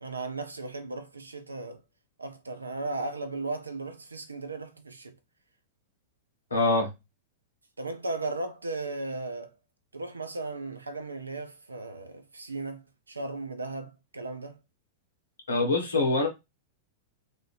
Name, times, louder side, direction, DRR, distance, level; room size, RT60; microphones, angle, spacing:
voice 1, 0.0-1.8 2.2-5.1 7.8-9.5 9.9-14.6, right 2 dB, 85° right, 0.7 m, -36 dB
voice 2, 6.5-6.9 15.5-16.3, left 2 dB, 80° left, 1.4 m, -24 dB
3.1 x 2.7 x 3.2 m
figure-of-eight pair, 100°, 0 cm